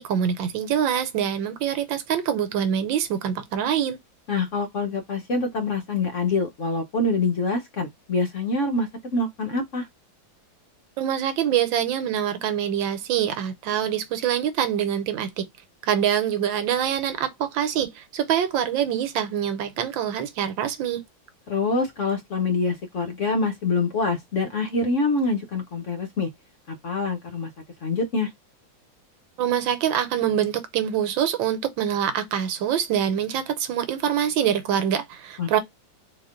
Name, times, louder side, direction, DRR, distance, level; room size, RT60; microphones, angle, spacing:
voice 1, 0.0-4.0 11.0-15.4 15.8-21.0 29.4-35.6, right 9 dB, 85° right, 1.5 m, -25 dB
voice 2, 4.3-9.9 21.5-26.3 26.7-27.5 27.8-28.3 35.4-35.6, left 3 dB, 60° left, 0.8 m, -25 dB
3.8 x 2.9 x 3.6 m
omnidirectional pair, 2.1 m